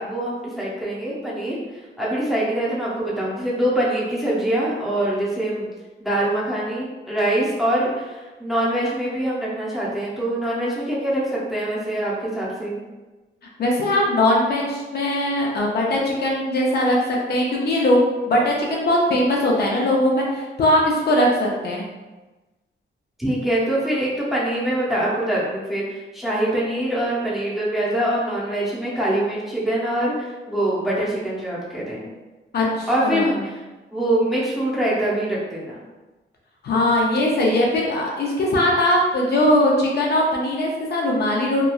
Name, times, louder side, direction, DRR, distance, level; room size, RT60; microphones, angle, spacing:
voice 1, 0.0-1.6 2.0-5.7 6.0-12.8 23.2-32.1 32.9-33.6 33.9-35.8, right 1 dB, ahead, -7 dB, 0.7 m, -24 dB
voice 2, 13.6-21.8 32.5-33.4 36.6-41.6, left 1 dB, 55° left, -2 dB, 0.5 m, -20 dB
2.9 x 2.3 x 2.3 m, 1.2 s
wide cardioid pair, 135°, 20 cm